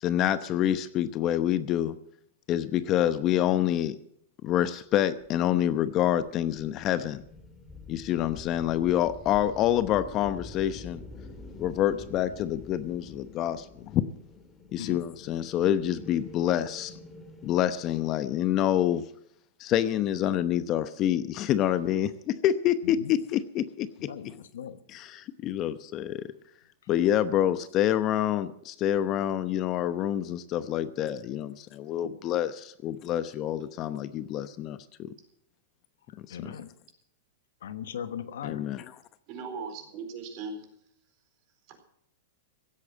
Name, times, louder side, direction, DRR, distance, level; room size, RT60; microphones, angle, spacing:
voice 1, 0.0-1.9 2.5-4.0 4.4-7.2 7.9-11.0 11.6-14.0 14.7-16.9 17.4-19.0 19.6-23.9 25.4-26.3 26.9-35.1 36.3-36.4 38.4-38.8, left 11 dB, 40° left, 13 dB, 0.8 m, -27 dB
sound 1, 5.2-18.6, left 2 dB, 10° left, 2.4 m, -47 dB
voice 2, 22.8-23.1 24.0-24.8 27.3-27.5 36.1-36.7 37.6-38.7, left 8 dB, 75° left, 12 dB, 1.2 m, -39 dB
voice 3, 32.0-32.4 39.3-40.7 41.7-41.8, right 4 dB, 50° right, 6 dB, 4.3 m, -39 dB
16.0 x 8.4 x 8.8 m, 0.70 s
hypercardioid pair, 115°, 0 cm